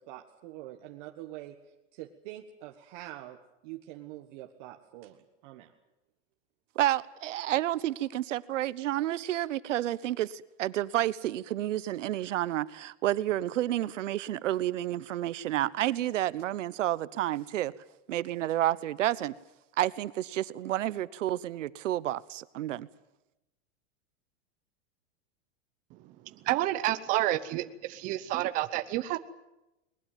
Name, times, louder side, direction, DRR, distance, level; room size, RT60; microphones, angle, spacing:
voice 1, 0.0-1.6 1.9-3.4 3.6-5.7, right 14 dB, 40° right, 1.5 m, -45 dB
voice 2, 6.7-17.7 18.1-19.3 19.8-22.9, right 13 dB, 85° right, 1.1 m, -30 dB
voice 3, 25.9-29.2, right 15 dB, 20° right, 0.8 m, -30 dB
21.0 x 20.0 x 9.2 m
supercardioid pair, 170°, 36 cm